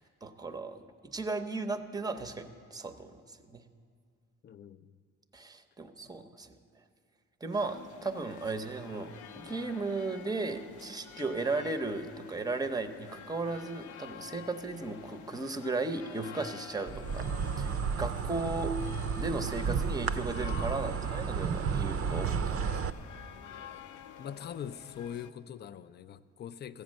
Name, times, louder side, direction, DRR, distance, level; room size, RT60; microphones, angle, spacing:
voice 1, 0.0-3.2 3.5-3.6 5.3-6.5 7.4-9.1 9.4-17.2 17.6-18.8 19.2-22.7, right 3 dB, 15° right, 0.7 m, -35 dB
voice 2, 4.4-4.9 24.2-26.8, left 9 dB, 35° left, 0.4 m, -42 dB
sound 1, 7.5-25.3, left 8 dB, 75° left, 0.7 m, -49 dB
Insect, 16.9-22.9, right 6 dB, 50° right, 0.5 m, -32 dB
14.5 x 8.1 x 6.4 m
cardioid pair, 90°, 30 cm